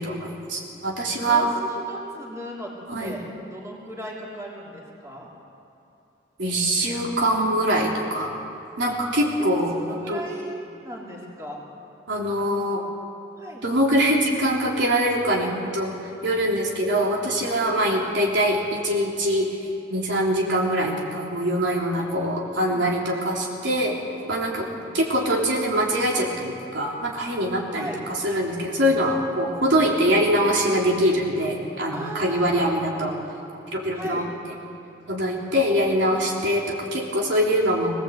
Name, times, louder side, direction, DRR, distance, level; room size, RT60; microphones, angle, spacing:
voice 1, 0.0-1.5 2.9-3.1 6.4-8.3 8.8-9.7 10.1-10.2 12.1-12.8 13.6-15.9 16.2-19.6 19.9-24.0 24.3-24.7 24.9-33.1 33.7-34.5 35.1-37.9, equal, 80° right, -2 dB, 3.5 m, -23 dB
voice 2, 1.2-2.7 3.0-5.3 8.8-8.9 9.4-10.5 10.8-11.6 13.4-13.6 22.0-22.9 24.5-24.9 27.7-28.1 31.9-32.7 33.9-34.3 35.6-36.3, right 1 dB, 15° right, -4 dB, 3.5 m, -38 dB
22.5 x 18.0 x 8.3 m, 2.8 s
head